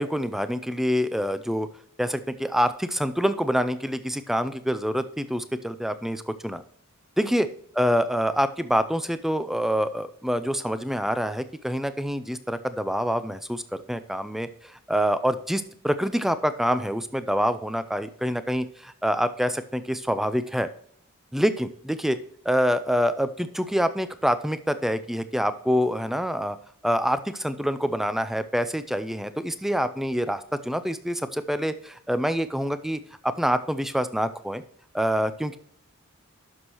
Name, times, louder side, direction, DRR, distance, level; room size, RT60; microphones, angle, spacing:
voice 1, 0.0-1.7 2.0-6.6 7.2-7.5 7.7-20.7 21.3-22.2 22.5-26.6 26.8-34.6 34.9-35.6, equal, ahead, 12 dB, 0.4 m, -26 dB
11.5 x 6.3 x 3.0 m, 0.62 s
head